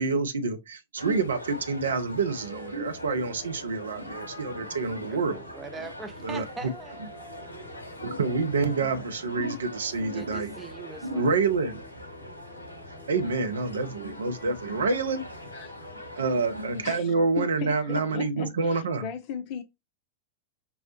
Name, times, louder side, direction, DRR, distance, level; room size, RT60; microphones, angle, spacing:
voice 1, 0.0-5.4 6.2-6.4 8.0-10.5 11.0-11.8 13.1-15.2 16.2-19.1, right 4 dB, 70° right, 0.6 m, -27 dB
sound 1, 1.0-16.9, left 1 dB, 80° left, 0.7 m, -43 dB
sound 2, 2.3-16.2, left 3 dB, 15° left, 0.9 m, -51 dB
voice 2, 5.1-7.0 10.1-11.3, right 4 dB, 15° right, 0.5 m, -41 dB
voice 3, 16.8-19.6, left 7 dB, 45° left, 0.5 m, -36 dB
5.4 x 2.1 x 2.8 m
figure-of-eight pair, 90°, 0 cm